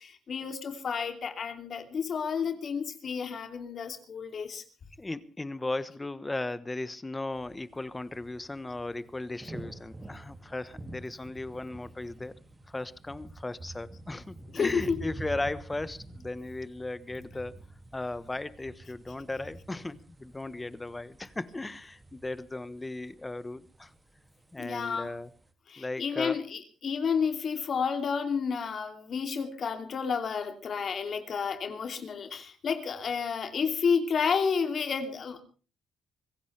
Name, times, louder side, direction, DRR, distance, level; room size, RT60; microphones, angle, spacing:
voice 1, 0.0-4.6 14.5-15.1 24.6-25.1 25.7-35.4, left 6 dB, 50° left, 7 dB, 2.8 m, -31 dB
voice 2, 5.0-12.3 12.7-17.5 17.9-23.9 24.5-25.3 25.8-26.4, left 2 dB, 15° left, 15 dB, 1.2 m, -36 dB
sound 1, 7.3-25.5, right 2 dB, 20° right, 2.3 m, -48 dB
24.5 x 16.0 x 3.4 m, 0.35 s
cardioid pair, 90°, 0 cm